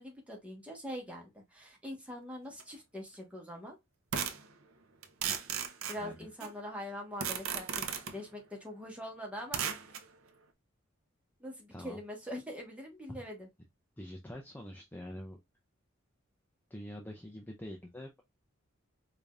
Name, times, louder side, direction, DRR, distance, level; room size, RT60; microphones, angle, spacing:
voice 1, 0.0-3.8 5.9-9.6 11.4-13.5, equal, 5° right, 1.2 m, -43 dB
sound 1, 2.6-2.7 4.1-4.5 5.0-6.5 7.2-8.2 9.5-10.0, right 7 dB, 90° right, 0.6 m, -35 dB
voice 2, 6.0-6.3 11.7-12.0 13.1-13.2 14.0-15.4 16.7-18.2, left 1 dB, 10° left, 0.5 m, -45 dB
4.9 x 2.6 x 2.3 m
head